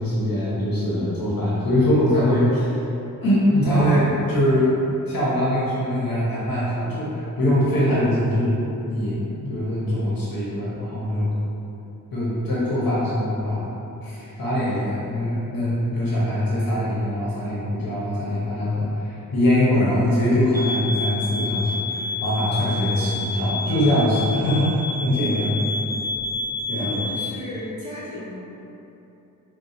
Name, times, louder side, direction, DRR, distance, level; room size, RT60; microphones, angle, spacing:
voice 1, 0.0-2.7 3.2-4.7 5.1-8.5 8.9-11.3 12.1-13.7 14.0-25.6 26.7-27.0, left 1 dB, 85° left, -8 dB, 1.0 m, -22 dB
sound 1, 20.5-27.3, left 3 dB, 10° left, 0.3 m, -29 dB
voice 2, 25.2-25.5 26.7-28.4, left 1 dB, 60° left, -8 dB, 1.1 m, -35 dB
3.7 x 2.4 x 4.2 m, 2.9 s
wide cardioid pair, 160°, 34 cm